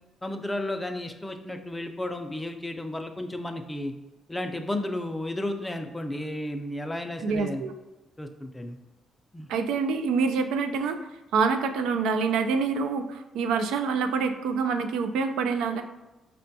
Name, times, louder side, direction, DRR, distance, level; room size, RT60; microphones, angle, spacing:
voice 1, 0.2-3.9 4.3-7.6 8.2-8.8 9.3-9.5, left 1 dB, 15° left, 5 dB, 0.4 m, -33 dB
voice 2, 7.2-7.7 9.5-15.8, right 5 dB, 90° right, 7 dB, 0.3 m, -26 dB
5.0 x 2.2 x 2.7 m, 1.0 s
cardioid pair, 90°, 0 cm